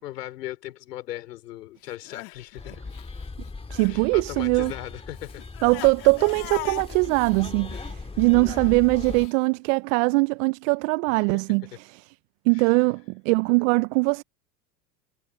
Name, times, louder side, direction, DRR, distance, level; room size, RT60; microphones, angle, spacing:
voice 1, 0.0-2.8 3.9-5.4 8.5-8.7 11.3-11.4 12.5-12.9, left 14 dB, 70° left, 4.0 m, -38 dB
Crying sobbing, 1.9-4.0 4.3-9.3, left 31 dB, 55° left, 3.2 m, -41 dB
sound 1, 2.6-9.3, left 3 dB, 10° left, 2.9 m, -38 dB
voice 2, 3.7-4.7 5.6-12.0 12.5-14.2, right 30 dB, 50° right, 0.8 m, -22 dB
hypercardioid pair, 90°, 48 cm